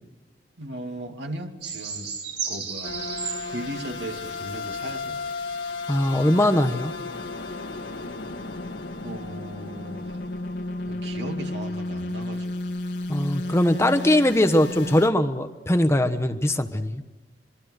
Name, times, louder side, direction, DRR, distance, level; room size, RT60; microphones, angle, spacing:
voice 1, 0.6-2.1 2.5-3.0 3.5-5.2 9.0-10.2 10.9-12.6, right 1 dB, 85° right, 4 dB, 2.4 m, -37 dB
sound 1, 1.6-5.9 6.4-6.5, right 6 dB, 70° right, 7.0 m, -35 dB
sound 2, 2.8-15.1, left 2 dB, 70° left, 2.3 m, -33 dB
voice 2, 5.9-6.9 13.1-17.0, left 1 dB, 15° left, 7 dB, 1.2 m, -21 dB
26.0 x 23.0 x 6.5 m, 1.1 s
head